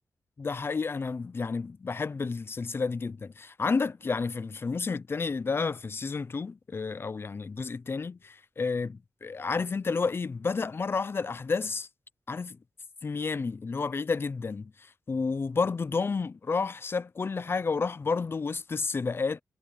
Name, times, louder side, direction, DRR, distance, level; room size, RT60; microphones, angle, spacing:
voice 1, 0.4-11.9 12.3-12.6 13.0-14.7 15.1-19.4, left 4 dB, 40° left, 0.6 m, -31 dB
wide cardioid pair, 100°, 6 cm